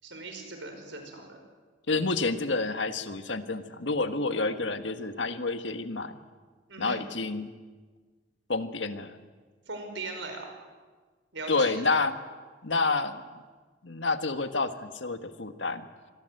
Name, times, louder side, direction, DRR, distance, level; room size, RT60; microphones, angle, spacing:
voice 1, 0.0-1.4 6.7-7.0 9.7-10.5 11.3-11.8, right 3 dB, 75° right, 5 dB, 5.7 m, -39 dB
voice 2, 1.9-6.2 6.8-7.5 8.5-9.1 11.5-12.1 12.6-13.2 13.8-15.9, left 3 dB, 75° left, 9 dB, 1.6 m, -29 dB
26.5 x 20.5 x 7.9 m, 1.4 s
head